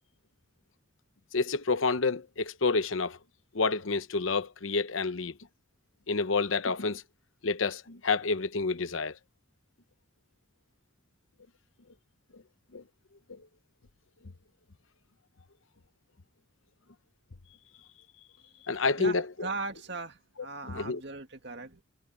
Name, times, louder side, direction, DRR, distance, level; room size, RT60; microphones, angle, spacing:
voice 1, 1.3-3.2 3.5-5.3 6.1-7.0 7.4-9.2 12.7-12.8 13.3-13.4 18.7-19.5 20.7-21.0, left 4 dB, 75° left, 0.9 m, -29 dB
voice 2, 19.0-21.8, right 3 dB, 55° right, 2.2 m, -39 dB
head